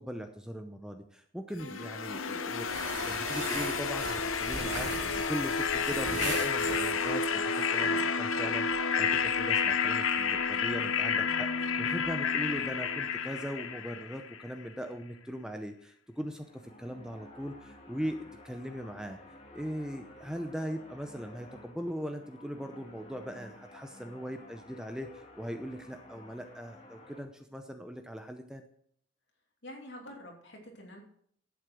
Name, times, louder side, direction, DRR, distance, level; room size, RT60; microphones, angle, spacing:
voice 1, 0.0-16.4 16.8-19.2 19.5-28.6, equal, 5° right, 6 dB, 0.7 m, -40 dB
sound 1, 1.6-14.5, left 5 dB, 85° left, 0.8 m, -30 dB
sound 2, 2.6-7.2, right 3 dB, 70° right, 2.4 m, -40 dB
voice 2, 7.8-8.1 29.6-31.0, equal, 60° left, 1 dB, 2.9 m, -47 dB
sound 3, 16.1-27.2, left 1 dB, 30° left, 1.7 m, -53 dB
11.5 x 8.1 x 6.2 m, 0.65 s
head